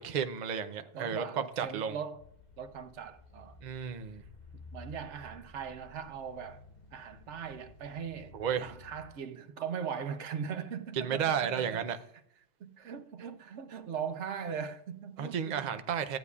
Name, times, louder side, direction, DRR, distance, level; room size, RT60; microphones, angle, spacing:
voice 1, 0.0-2.0 3.6-4.2 8.3-8.7 11.0-12.0 15.2-16.2, right 7 dB, 50° right, 0.7 m, -33 dB
voice 2, 0.9-2.2 2.6-3.6 4.5-6.6 6.9-11.8 12.6-15.7, right 7 dB, 85° right, 1.0 m, -40 dB
sound 1, 2.2-9.1, left 1 dB, 45° left, 0.8 m, -54 dB
14.0 x 8.2 x 2.4 m
omnidirectional pair, 1.2 m